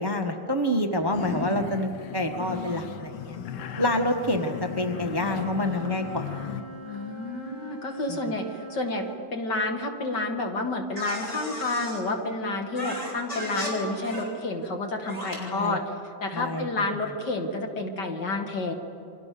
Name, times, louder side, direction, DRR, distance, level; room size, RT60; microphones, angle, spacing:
voice 1, 0.0-3.4 3.8-6.3 8.1-8.2 15.4-15.8 16.3-16.8, left 1 dB, 15° right, 5 dB, 1.0 m, -27 dB
sound 1, 1.1-6.6, left 9 dB, 75° left, 1.6 m, -36 dB
Wind instrument woodwind instrument, 4.3-9.3, equal, 60° right, 6.5 m, -42 dB
voice 2, 6.8-9.1 9.3-15.8 16.2-18.7, left 2 dB, 60° left, 3 dB, 2.7 m, -30 dB
sound 2, 11.0-12.0 12.7-13.7 14.0-14.2 15.1-15.4, left 1 dB, 20° left, 6.3 m, -34 dB
29.0 x 23.5 x 6.8 m, 2.7 s
omnidirectional pair, 2.1 m